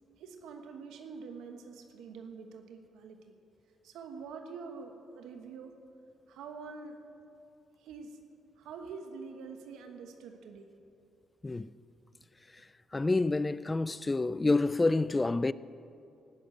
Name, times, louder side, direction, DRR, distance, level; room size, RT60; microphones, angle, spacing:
voice 1, 0.2-3.3 3.8-5.8 6.3-7.0 7.8-8.2 8.6-10.8 12.9-13.0, right 5 dB, 85° right, 1.2 m, -46 dB
voice 2, 12.9-15.5, left 3 dB, 20° left, 0.4 m, -28 dB
17.5 x 6.6 x 9.0 m
cardioid pair, 90°, 0 cm